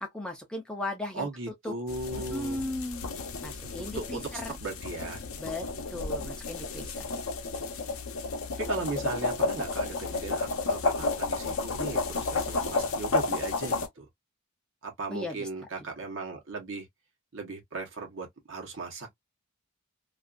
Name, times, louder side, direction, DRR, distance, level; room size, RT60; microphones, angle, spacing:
voice 1, 0.0-1.3 1.6-1.7 2.3-3.0 3.4-4.6 5.4-7.1 15.1-15.5, left 1 dB, 5° left, 0.4 m, -36 dB
voice 2, 1.1-2.6 3.9-5.2 8.6-14.1 14.8-16.9 17.3-19.1, right 3 dB, 60° right, 1.0 m, -37 dB
sound 1, 1.9-13.9, left 3 dB, 70° left, 0.6 m, -32 dB
2.5 x 2.3 x 2.4 m
head